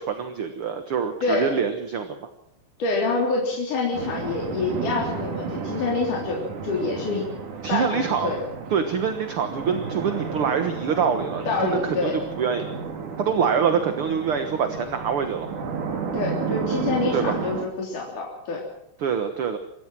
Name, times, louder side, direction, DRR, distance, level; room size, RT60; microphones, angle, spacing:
voice 1, 0.0-2.3 7.6-8.3 8.7-12.7 13.2-15.5 17.1-17.5 19.0-19.6, right 7 dB, 55° right, 8 dB, 1.9 m, -25 dB
voice 2, 2.8-7.3 7.7-8.4 11.5-12.2 16.1-18.6, left 3 dB, 75° left, -2 dB, 5.0 m, -26 dB
sound 1, 3.9-17.6, right 5 dB, 75° right, 4.0 m, -32 dB
26.5 x 14.5 x 7.6 m, 0.76 s
omnidirectional pair, 3.6 m